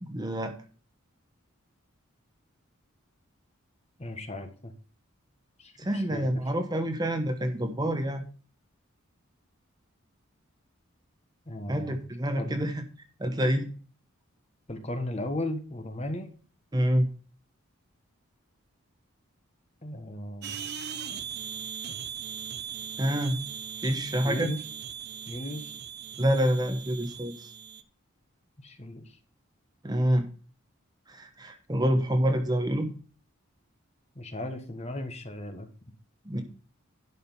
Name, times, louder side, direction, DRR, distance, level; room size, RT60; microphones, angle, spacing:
voice 1, 0.0-0.5 5.8-8.2 11.7-12.8 13.2-13.7 16.7-17.1 23.0-23.4 23.8-24.5 26.2-27.5 29.8-30.3 31.1-32.9 36.2-36.4, equal, 20° right, 7 dB, 1.0 m, -27 dB
voice 2, 4.0-4.7 5.6-6.3 11.5-12.0 12.4-12.6 14.7-16.3 19.8-20.6 24.2-24.6 25.3-25.8 28.6-29.2 31.9-32.1 34.1-35.7, left 1 dB, 30° left, 7 dB, 1.3 m, -36 dB
sound 1, 20.4-27.8, right 8 dB, 50° right, 0.8 m, -39 dB
11.5 x 5.1 x 5.6 m, 0.39 s
head